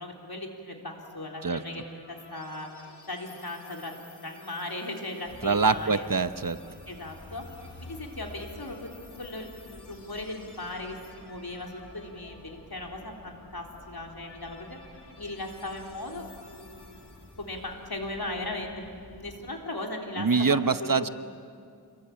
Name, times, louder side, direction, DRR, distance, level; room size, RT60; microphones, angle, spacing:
voice 1, 0.0-1.8 2.1-3.9 4.2-6.1 6.9-8.9 9.2-14.8 15.2-17.1 17.4-21.1, left 2 dB, 65° left, 1 dB, 3.9 m, -38 dB
sound 1, 1.0-17.9, left 3 dB, 80° left, 2.9 m, -55 dB
sound 2, 5.2-19.6, left 2 dB, 40° left, 2.2 m, -51 dB
voice 2, 5.4-6.6 20.2-21.1, right 4 dB, 55° right, 12 dB, 0.9 m, -24 dB
28.0 x 22.5 x 8.9 m, 2.4 s
wide cardioid pair, 50°, 40 cm